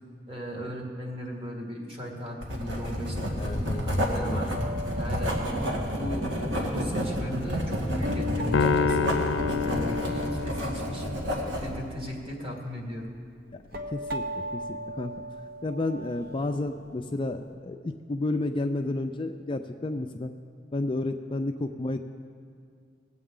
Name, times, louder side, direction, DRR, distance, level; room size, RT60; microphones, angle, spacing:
voice 1, 0.3-4.5 4.9-9.1 9.6-11.2 11.6-13.0, equal, 30° right, -1 dB, 1.9 m, -37 dB
Writing, 2.4-11.7, equal, 75° right, 1.7 m, -30 dB
voice 2, 3.4-3.8 4.2-4.4 13.5-13.6 13.9-15.1 15.6-20.3 20.7-22.0, left 2 dB, 25° left, 6 dB, 0.4 m, -31 dB
sound 1, 4.5-6.6 7.5-7.6 8.0-12.3 13.0-13.2 13.6-16.6 16.8-16.9 17.5-17.6, left 1 dB, 55° right, 0.9 m, -36 dB
Piano, 8.5-11.0, left 5 dB, 85° left, 0.5 m, -27 dB
19.0 x 7.9 x 3.8 m, 2.2 s
head